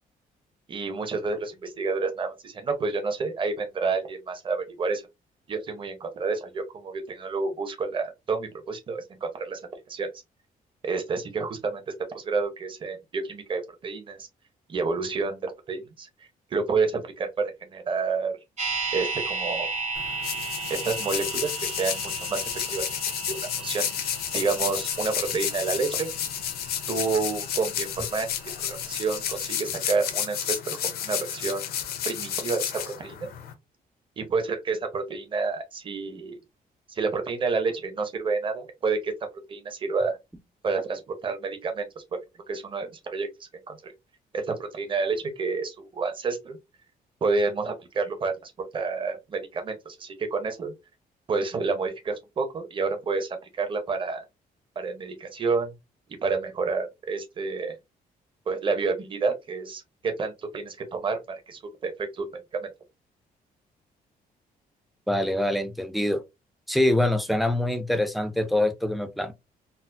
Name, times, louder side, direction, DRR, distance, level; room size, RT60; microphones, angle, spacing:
voice 1, 0.7-5.0 5.5-9.6 9.9-10.1 10.8-14.3 14.7-16.1 16.5-18.4 18.9-19.7 20.7-22.9 23.3-23.9 24.3-26.1 26.9-28.3 28.6-31.7 32.0-33.3 34.2-36.4 36.9-39.1 39.5-40.2 40.6-42.0 42.5-43.9 44.3-46.6 47.2-50.7 51.3-54.2 54.8-55.7 56.2-57.7 58.5-62.3 62.5-62.7, right 4 dB, 35° right, 0.8 m, -29 dB
sound 1, 18.6-28.6 28.9-29.0, right 4 dB, 50° right, 1.2 m, -35 dB
sound 2, 19.9-33.5, left 9 dB, 80° left, 0.7 m, -31 dB
voice 2, 65.1-66.2 66.7-69.4, left 1 dB, ahead, 0.4 m, -24 dB
4.1 x 2.0 x 2.6 m
cardioid pair, 145°, 16 cm